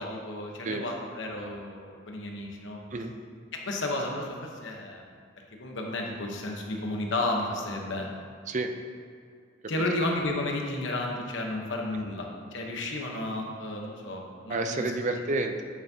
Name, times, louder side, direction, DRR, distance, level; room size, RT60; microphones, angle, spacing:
voice 1, 0.0-2.8 3.7-4.3 4.6-5.0 5.6-8.1 9.7-14.8, left 2 dB, 65° left, 1 dB, 1.0 m, -32 dB
voice 2, 14.5-15.6, right 2 dB, 40° right, 5 dB, 0.5 m, -30 dB
8.6 x 7.2 x 2.8 m, 2.2 s
head